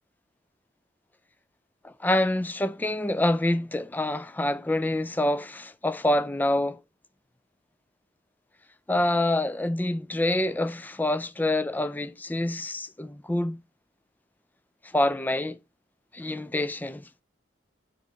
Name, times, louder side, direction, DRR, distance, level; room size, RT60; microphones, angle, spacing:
voice 1, 1.8-6.8 8.9-13.6 14.9-15.6 16.1-17.1, left 1 dB, 10° left, 0.4 m, -26 dB
7.3 x 4.5 x 5.1 m
head